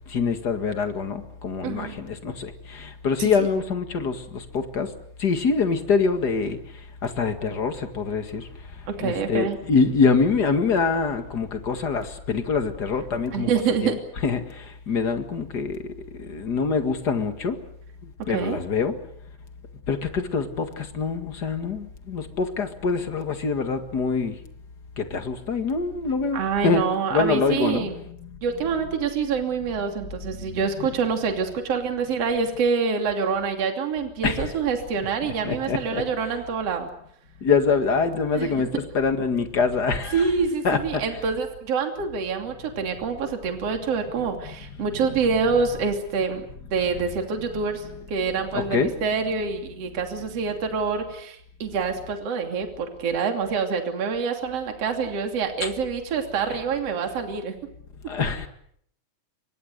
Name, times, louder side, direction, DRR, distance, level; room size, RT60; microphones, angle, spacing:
voice 1, 0.1-4.9 5.2-6.6 7.0-8.5 9.0-13.5 13.8-15.9 16.2-17.6 18.3-19.0 19.9-24.4 25.0-26.8 27.1-28.3 34.2-34.5 35.4-36.0 37.4-40.3 40.6-41.0 48.5-49.0 55.6-55.7 56.5-56.6 58.1-58.5, left 5 dB, 35° left, 1.8 m, -25 dB
voice 2, 1.6-2.0 3.2-3.5 8.9-9.6 13.3-14.0 18.2-18.6 26.3-28.0 28.4-36.9 38.4-38.6 40.1-46.5 46.7-57.5, right 5 dB, 45° right, 3.6 m, -26 dB
28.5 x 24.0 x 6.7 m
omnidirectional pair, 4.1 m